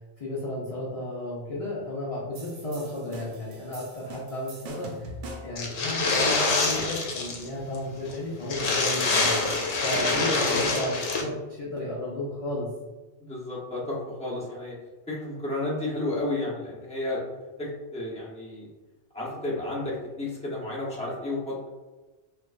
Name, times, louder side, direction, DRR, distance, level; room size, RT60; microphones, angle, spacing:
voice 1, 0.2-5.1 5.4-9.4 9.8-12.7, left 1 dB, 40° left, -6 dB, 0.5 m, -33 dB
sound 1, 2.4-5.7, right 1 dB, 85° right, 0.9 m, -42 dB
sound 2, 5.6-7.5 7.7-7.8 8.1-8.2 8.5-11.2, left 3 dB, 75° left, 0.9 m, -25 dB
voice 2, 10.1-10.6 13.2-14.8 15.1-17.2 17.6-18.7 19.1-21.7, left 2 dB, 5° left, -6 dB, 0.8 m, -32 dB
4.4 x 2.3 x 2.5 m, 1.2 s
omnidirectional pair, 1.2 m